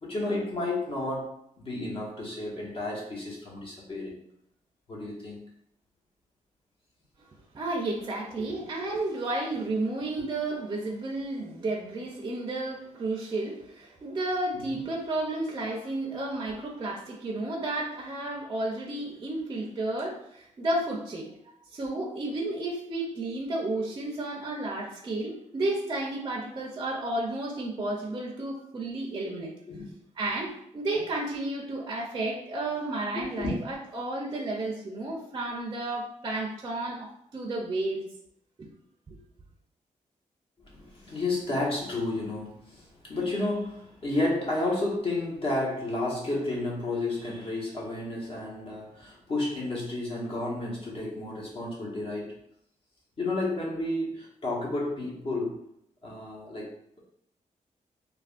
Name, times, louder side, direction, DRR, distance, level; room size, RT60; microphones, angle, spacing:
voice 1, 0.0-4.1 4.9-5.5 14.5-14.8 29.7-29.9 33.1-33.5 40.6-52.4 53.2-55.6 56.0-56.7, left 2 dB, 45° left, -4 dB, 1.0 m, -31 dB
voice 2, 7.5-21.3 21.7-29.5 30.2-38.0, right 2 dB, 30° right, -2 dB, 0.5 m, -32 dB
3.2 x 2.2 x 2.4 m, 0.73 s
wide cardioid pair, 115°, 13 cm